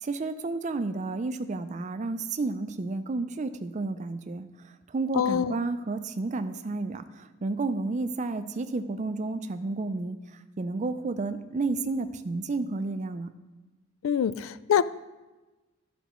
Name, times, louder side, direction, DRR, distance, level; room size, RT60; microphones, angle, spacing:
voice 1, 0.0-10.2 10.6-13.3, right 3 dB, 35° right, 10 dB, 0.4 m, -31 dB
voice 2, 5.1-5.6 14.0-14.8, left 8 dB, 70° left, 16 dB, 0.3 m, -25 dB
13.0 x 5.0 x 3.1 m, 1.2 s
head